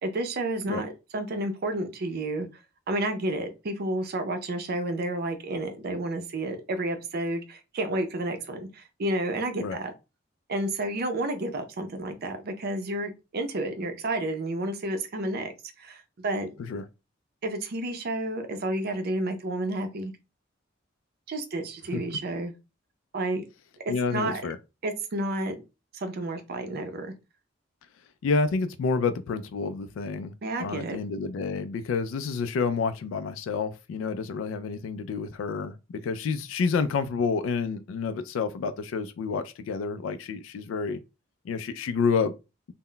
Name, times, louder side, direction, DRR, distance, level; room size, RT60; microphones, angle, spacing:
voice 1, 0.0-2.5 2.9-9.9 10.5-15.5 15.8-16.5 17.4-20.1 21.3-22.5 23.1-23.5 23.9-24.4 24.8-25.6 25.9-27.1 30.4-31.0, right 1 dB, 55° right, 0.5 m, -31 dB
voice 2, 23.9-24.6 28.2-30.3 30.6-41.0 41.5-42.3, left 5 dB, 90° left, 0.3 m, -29 dB
2.1 x 2.1 x 3.7 m
head